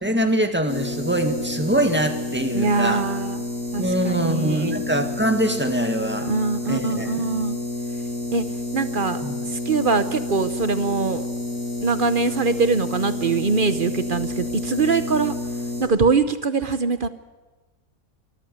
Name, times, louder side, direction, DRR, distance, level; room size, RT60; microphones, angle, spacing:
voice 1, 0.0-3.0 3.8-6.3 6.7-7.3 9.2-9.3, right 1 dB, 5° right, 6 dB, 1.7 m, -23 dB
sound 1, 0.7-15.8, left 2 dB, 65° left, 8.5 m, -30 dB
voice 2, 2.5-3.5 3.7-4.8 6.2-7.6 8.3-8.4 8.7-9.2 9.5-11.2 11.8-15.3 15.8-17.1, right 4 dB, 45° right, 12 dB, 0.8 m, -23 dB
24.0 x 13.5 x 9.4 m, 1.2 s
omnidirectional pair, 1.6 m